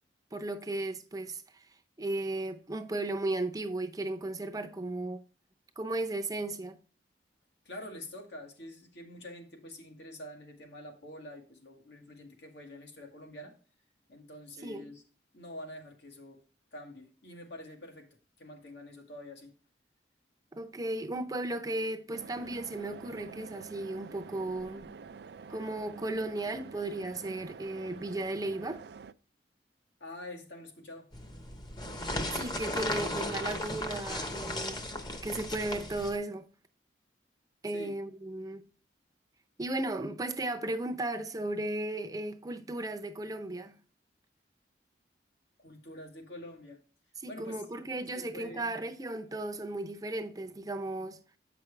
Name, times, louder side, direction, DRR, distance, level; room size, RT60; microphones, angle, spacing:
voice 1, 0.3-1.6 2.0-5.2 5.8-6.8 14.6-14.9 20.5-24.9 25.5-28.8 32.3-34.8 35.2-36.5 37.6-38.6 39.6-43.7 47.2-51.2, right 2 dB, 20° right, 0.6 m, -35 dB
voice 2, 7.7-13.6 14.1-15.0 15.3-16.4 16.7-19.5 30.0-31.1 33.0-33.2 37.7-38.0 45.6-46.8 47.3-47.6 48.1-48.7, left 1 dB, 75° left, 1.8 m, -46 dB
sound 1, 22.1-29.1, right 5 dB, 65° right, 0.4 m, -47 dB
sound 2, 31.1-36.2, left 1 dB, 25° left, 0.9 m, -36 dB
8.4 x 6.0 x 3.3 m
head